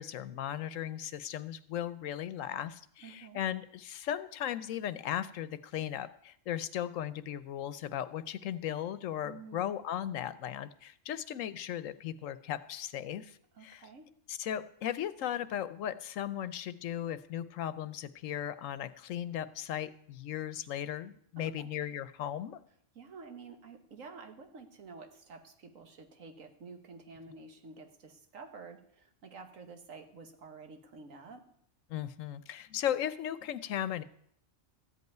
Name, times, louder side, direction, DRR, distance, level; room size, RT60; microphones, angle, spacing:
voice 1, 0.0-13.9 14.3-22.6 31.9-34.0, left 10 dB, 90° left, 14 dB, 1.1 m, -37 dB
voice 2, 3.0-3.4 9.2-9.7 13.5-14.1 21.4-21.7 23.0-31.4, right 4 dB, 85° right, 6 dB, 1.7 m, -50 dB
14.0 x 5.5 x 9.2 m, 0.68 s
omnidirectional pair, 1.3 m